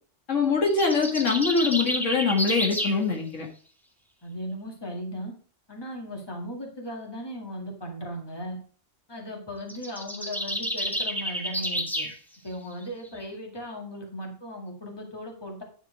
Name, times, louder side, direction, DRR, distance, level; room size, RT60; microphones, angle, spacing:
voice 1, 0.3-3.5, left 4 dB, 80° left, 2 dB, 1.8 m, -23 dB
sound 1, 0.7-3.0 9.6-12.1, equal, ahead, 1.1 m, -30 dB
voice 2, 4.2-5.3 5.7-8.6 9.1-12.1 12.4-15.6, equal, 20° left, 0 dB, 2.1 m, -37 dB
10.0 x 4.6 x 4.9 m, 0.42 s
omnidirectional pair, 1.3 m